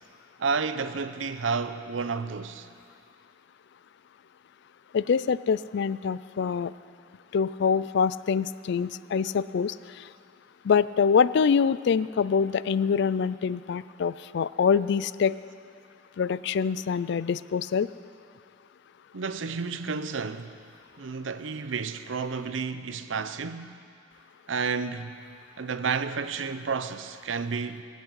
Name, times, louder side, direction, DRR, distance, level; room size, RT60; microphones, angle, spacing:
voice 1, 0.4-2.7 19.1-20.5 21.0-23.7 24.5-25.1 25.6-27.8, right 5 dB, 85° right, 0.7 m, -31 dB
voice 2, 4.9-6.7 7.3-10.1 10.6-15.4 16.2-17.9, left 6 dB, 65° left, 0.4 m, -25 dB
19.0 x 8.3 x 8.1 m
head